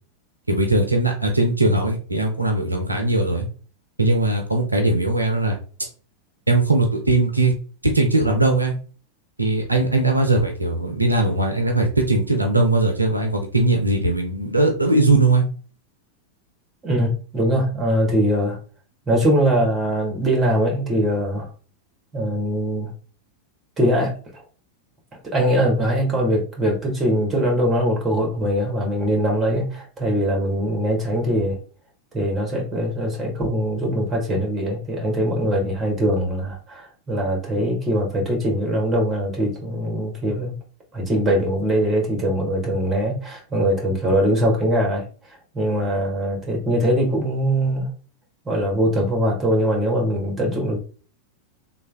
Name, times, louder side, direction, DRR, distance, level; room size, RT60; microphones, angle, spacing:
voice 1, 0.5-3.5 4.0-5.9 6.5-7.5 7.8-8.7 9.4-15.4, right 2 dB, 85° right, 3 dB, 0.6 m, -20 dB
voice 2, 16.8-18.6 19.1-21.5 22.1-22.9 23.8-24.4 25.2-31.6 32.1-40.5 40.9-45.1 45.5-47.9 48.4-50.8, equal, 20° right, 0 dB, 1.5 m, -22 dB
3.2 x 2.3 x 3.4 m, 0.39 s
figure-of-eight pair, 90°, 0 cm